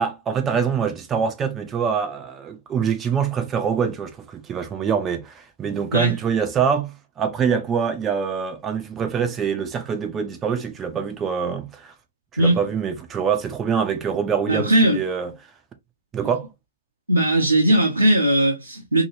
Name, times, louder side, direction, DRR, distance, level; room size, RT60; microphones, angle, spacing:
voice 1, 0.0-11.9 12.3-15.3 16.1-16.5, right 7 dB, 20° right, 0.5 m, -24 dB
voice 2, 14.5-15.0 17.1-19.0, right 1 dB, 85° right, 0.8 m, -18 dB
3.0 x 2.8 x 2.7 m
figure-of-eight pair, 105°, 0 cm